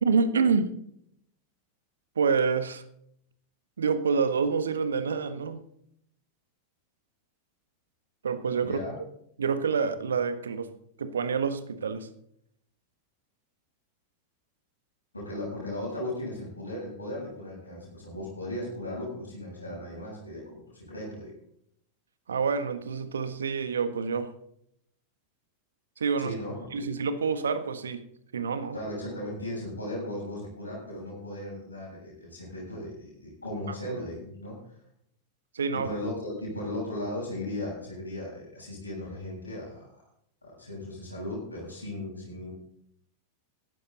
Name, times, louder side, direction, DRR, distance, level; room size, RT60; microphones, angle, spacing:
voice 1, 0.0-0.7 2.1-2.8 3.8-5.6 8.2-8.8 9.4-10.7 11.0-12.1 22.3-24.3 26.0-26.4 26.7-28.0 28.3-28.8 33.9-34.0 35.5-35.9, right 5 dB, 70° right, 11 dB, 1.4 m, -27 dB
voice 2, 8.6-9.0 15.1-21.3 26.2-26.9 28.7-34.6 35.7-39.9 40.4-42.5, left 1 dB, 80° left, -5 dB, 7.7 m, -37 dB
16.0 x 13.0 x 4.1 m, 0.71 s
figure-of-eight pair, 90°, 0 cm